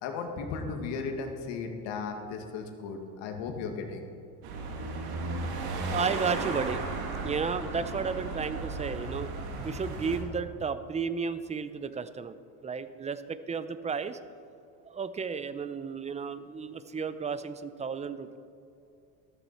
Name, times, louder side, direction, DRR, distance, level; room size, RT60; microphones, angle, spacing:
voice 1, 0.0-4.0, left 4 dB, 75° left, 4 dB, 2.2 m, -36 dB
sound 1, 4.4-10.2, right 3 dB, 75° right, 2.9 m, -35 dB
voice 2, 5.9-6.8 7.2-9.3 9.6-12.4 12.6-14.2 14.8-18.4, right 5 dB, 15° right, 12 dB, 0.5 m, -33 dB
14.0 x 13.5 x 4.3 m, 2.6 s
cardioid pair, 120°, 44 cm